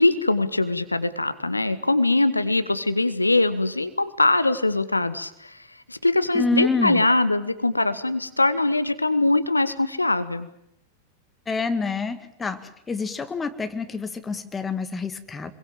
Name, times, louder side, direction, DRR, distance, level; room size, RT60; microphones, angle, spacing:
voice 1, 0.0-5.5 5.9-10.5, left 2 dB, 85° left, 12 dB, 1.3 m, -22 dB
voice 2, 6.3-7.0 11.5-15.5, left 4 dB, 15° left, 10 dB, 2.0 m, -27 dB
27.5 x 22.0 x 7.6 m, 0.74 s
figure-of-eight pair, 90°, 0 cm